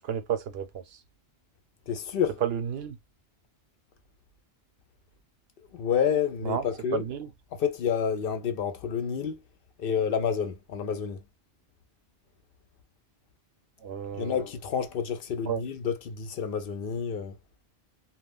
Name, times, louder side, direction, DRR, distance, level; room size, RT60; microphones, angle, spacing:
voice 1, 0.0-1.0 2.4-3.0 6.4-6.6 6.9-7.3 13.8-14.4 15.5-15.6, right 8 dB, 80° right, 0.8 m, -31 dB
voice 2, 1.9-2.3 5.7-7.0 7.5-9.4 9.8-11.2 14.1-17.4, left 7 dB, 65° left, 0.7 m, -29 dB
2.3 x 2.2 x 3.4 m
omnidirectional pair, 1.0 m